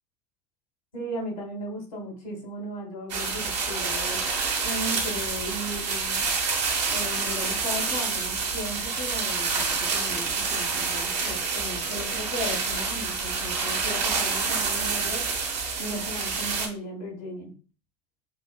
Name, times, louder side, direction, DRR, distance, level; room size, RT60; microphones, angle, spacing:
voice 1, 0.9-4.2 4.6-6.3 6.9-15.2 15.8-17.5, equal, 80° left, -1 dB, 2.1 m, -36 dB
sound 1, 3.1-16.7, right 4 dB, 80° right, 1.0 m, -28 dB
6.4 x 2.8 x 2.2 m, 0.36 s
figure-of-eight pair, 70°, 21 cm